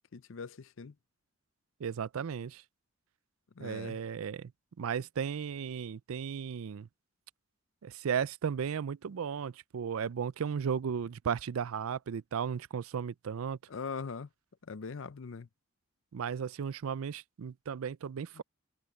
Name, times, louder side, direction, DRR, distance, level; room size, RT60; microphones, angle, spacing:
voice 1, 0.1-0.9 3.6-4.0 13.7-14.3 14.7-15.5 18.4-18.5, left 5 dB, 65° left, 0.6 m, -41 dB
voice 2, 1.8-2.6 3.6-4.5 4.8-6.9 7.8-13.6 16.1-18.4, right 7 dB, 85° right, 0.4 m, -35 dB
head